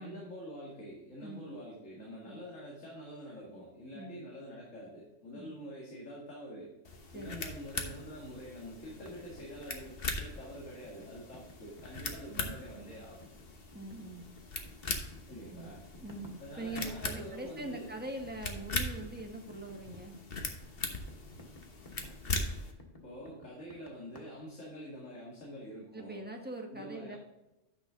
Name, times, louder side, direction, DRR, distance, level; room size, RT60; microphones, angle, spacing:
voice 1, 0.0-6.7 7.1-13.3 15.3-15.8 16.4-18.0 23.0-26.2 26.7-27.2, equal, 90° left, -5 dB, 2.5 m, -46 dB
sound 1, 6.8-22.7, left 3 dB, 50° left, 1.3 m, -41 dB
voice 2, 7.1-7.5 13.7-14.2 15.5-15.8 16.0-20.2 25.9-27.2, right 2 dB, 10° right, 2 dB, 1.2 m, -43 dB
sound 2, 8.9-17.0 17.2-24.2, left 2 dB, 30° left, 1.6 m, -54 dB
9.6 x 6.1 x 3.7 m, 0.99 s
omnidirectional pair, 1.3 m